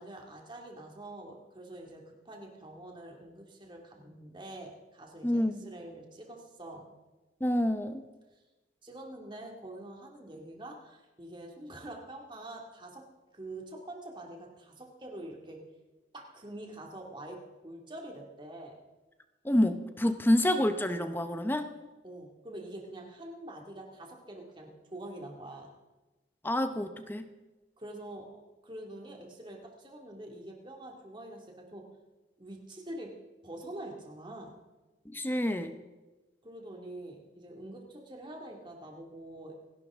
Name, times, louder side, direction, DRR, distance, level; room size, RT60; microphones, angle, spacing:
voice 1, 0.0-6.9 8.8-13.0 13.3-15.6 16.1-18.8 22.0-25.7 27.8-28.3 28.6-31.8 32.4-33.1 33.4-34.6 36.4-39.6, right 1 dB, 25° right, 1 dB, 2.3 m, -45 dB
voice 2, 5.2-5.7 7.4-8.0 19.4-21.7 26.4-27.3 35.1-35.7, left 1 dB, 10° left, 9 dB, 0.7 m, -28 dB
28.0 x 11.0 x 3.7 m, 1.2 s
head